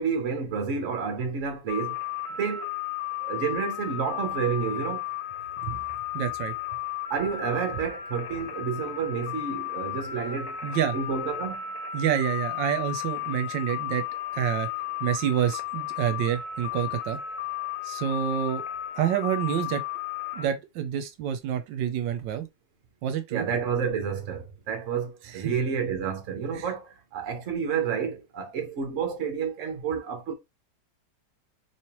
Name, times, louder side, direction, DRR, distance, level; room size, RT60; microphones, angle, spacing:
voice 1, 0.0-2.0 2.4-2.7 3.2-5.0 7.1-10.6 10.9-11.6 23.3-30.3, right 6 dB, 50° right, 1.1 m, -30 dB
sound 1, 1.7-20.5, left 11 dB, 80° left, 1.3 m, -34 dB
voice 2, 6.1-6.5 10.6-10.9 11.9-14.0 14.3-14.7 15.0-17.2 17.8-18.6 18.9-19.8 20.3-22.5 23.0-23.4 25.3-25.4 26.6-26.7, right 10 dB, 85° right, 1.3 m, -28 dB
3.2 x 3.0 x 2.9 m
omnidirectional pair, 1.9 m